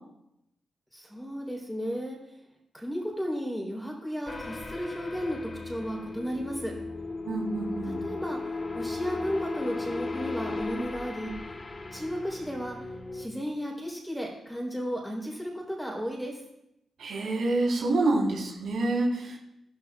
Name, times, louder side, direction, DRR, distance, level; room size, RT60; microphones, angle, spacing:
voice 1, 0.9-2.2 2.7-5.4 5.6-6.7 7.8-8.4 8.7-11.3 11.9-12.8 13.1-16.4, equal, 5° left, -1 dB, 3.7 m, -34 dB
sound 1, 4.3-13.3, left 3 dB, 30° left, 1.1 m, -36 dB
voice 2, 7.2-8.0 17.0-19.4, right 2 dB, 90° right, -2 dB, 3.8 m, -27 dB
16.0 x 12.5 x 2.4 m, 0.83 s
wide cardioid pair, 130°, 0 cm